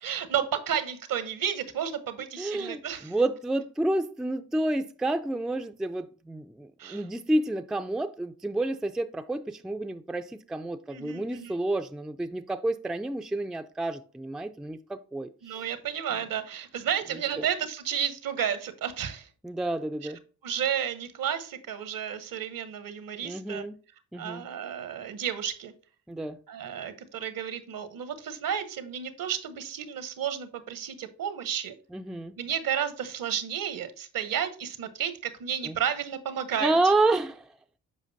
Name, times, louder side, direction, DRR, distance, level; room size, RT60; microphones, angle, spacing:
voice 1, 0.0-3.1 6.8-7.1 10.9-11.6 15.4-19.3 20.0-20.1 20.4-23.6 24.1-25.7 26.5-31.7 32.4-36.8, right 8 dB, 65° right, 0.9 m, -32 dB
voice 2, 2.4-15.6 17.4-17.5 19.4-20.2 23.2-23.7 24.1-24.4 26.1-26.4 31.9-32.3 35.6-35.8 36.6-37.5, right 2 dB, ahead, 0.4 m, -29 dB
7.4 x 5.0 x 2.7 m
supercardioid pair, 45°, 36 cm